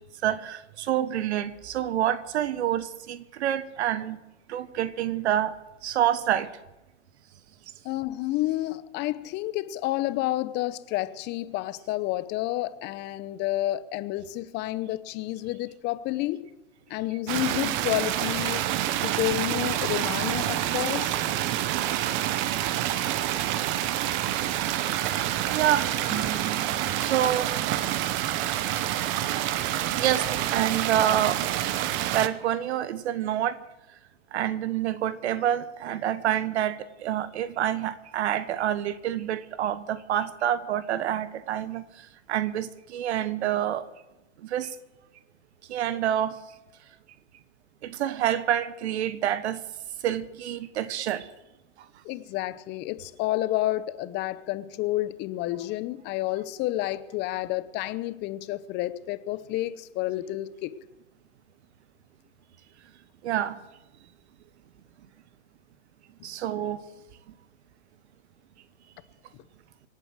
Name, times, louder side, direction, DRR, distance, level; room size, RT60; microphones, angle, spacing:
voice 1, 0.2-4.2 4.5-5.5 5.8-6.5 24.7-26.1 27.0-27.8 30.0-31.4 32.1-33.6 34.3-43.9 44.4-44.8 45.7-46.4 47.8-49.6 50.0-51.3 63.2-63.6 66.2-66.8, right 11 dB, 60° right, 1.4 m, -27 dB
voice 2, 7.8-16.5 16.9-18.7 19.0-21.2 52.0-60.8, left 16 dB, 30° left, 0.8 m, -30 dB
sound 1, 17.3-32.3, right 12 dB, 30° right, 0.9 m, -27 dB
sound 2, 26.1-28.7, right 9 dB, 15° right, 2.2 m, -40 dB
25.5 x 8.6 x 6.2 m
hypercardioid pair, 120°, 38 cm